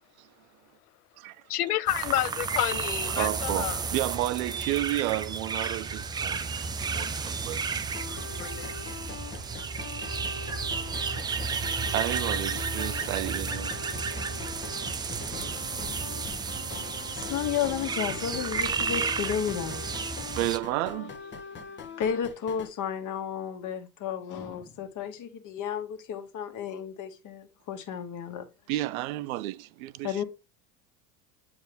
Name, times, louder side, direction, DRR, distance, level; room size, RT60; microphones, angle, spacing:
voice 1, 1.5-3.8 8.3-8.7, left 13 dB, 80° left, 0.6 m, -29 dB
sound 1, 1.9-20.6, right 5 dB, 10° right, 0.3 m, -32 dB
voice 2, 3.2-6.5 6.8-8.3 8.9-9.7 10.0-10.1 10.8-10.9 11.2-11.3 11.6-13.8 20.4-21.1 28.7-30.2, right 16 dB, 65° right, 0.5 m, -32 dB
sound 2, 7.9-22.7, left 6 dB, 25° left, 1.2 m, -42 dB
voice 3, 17.1-19.9 22.0-28.5 30.0-30.2, left 8 dB, 40° left, 1.7 m, -32 dB
8.9 x 4.8 x 3.5 m
hypercardioid pair, 85°, 46 cm